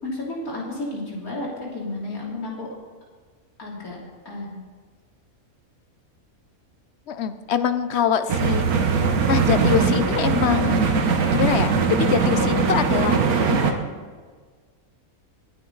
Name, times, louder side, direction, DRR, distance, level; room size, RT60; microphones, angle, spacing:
voice 1, 0.0-2.7 3.6-4.0 4.3-4.6, left 2 dB, 75° left, -4 dB, 3.6 m, -32 dB
voice 2, 7.1-8.6 9.3-10.8 11.3-13.8, left 8 dB, 60° left, 11 dB, 0.8 m, -24 dB
sound 1, 8.3-13.7, right 5 dB, 80° right, 1.5 m, -20 dB
20.5 x 9.1 x 4.0 m, 1.5 s
omnidirectional pair, 1.5 m